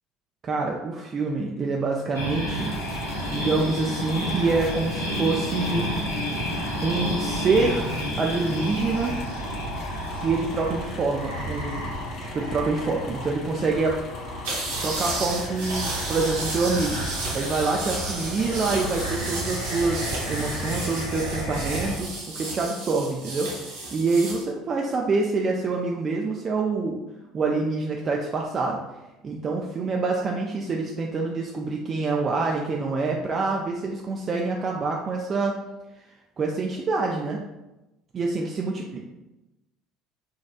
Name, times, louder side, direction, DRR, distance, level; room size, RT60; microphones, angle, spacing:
voice 1, 0.4-2.7 3.3-5.9 6.8-9.1 10.2-11.9 12.2-14.0 14.8-17.0 17.3-23.5 23.9-27.0 27.3-28.8 29.2-35.5 36.0-36.1 36.4-37.4 38.1-39.0, right 3 dB, 35° right, 0 dB, 0.3 m, -26 dB
sound 1, 2.1-22.0, equal, 85° left, 0.6 m, -31 dB
sound 2, 2.5-21.1, left 5 dB, 45° left, 0.3 m, -40 dB
sound 3, 14.4-24.4, right 2 dB, 65° right, 0.8 m, -33 dB
4.2 x 2.3 x 2.2 m, 1.0 s
figure-of-eight pair, 60°, 0 cm